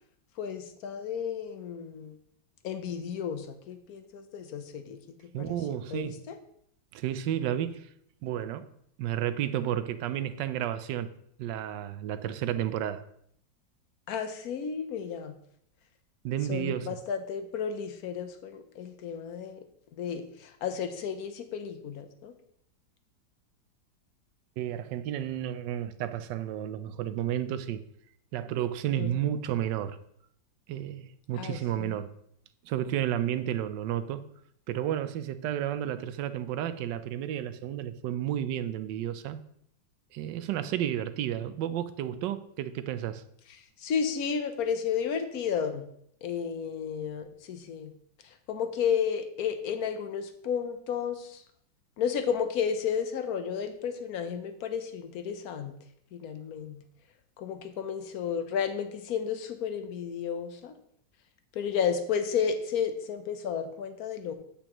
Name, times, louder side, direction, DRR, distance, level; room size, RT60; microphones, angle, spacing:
voice 1, 0.4-2.1 2.6-5.0 5.4-6.4 14.1-15.4 16.5-19.6 19.9-22.3 28.9-29.3 31.3-32.0 43.8-45.8 46.2-47.9 48.2-51.4 52.0-55.7 56.1-56.8 57.4-60.7 61.5-64.3, left 7 dB, 60° left, 8 dB, 1.2 m, -32 dB
voice 2, 5.3-6.2 6.9-7.9 8.2-8.7 9.0-11.1 11.4-13.0 16.2-16.9 24.6-27.8 28.3-30.0 30.7-32.1 32.6-34.3 34.7-39.4 40.1-43.2, right 11 dB, 75° right, 12 dB, 1.2 m, -32 dB
8.7 x 8.5 x 3.0 m, 0.70 s
omnidirectional pair, 2.1 m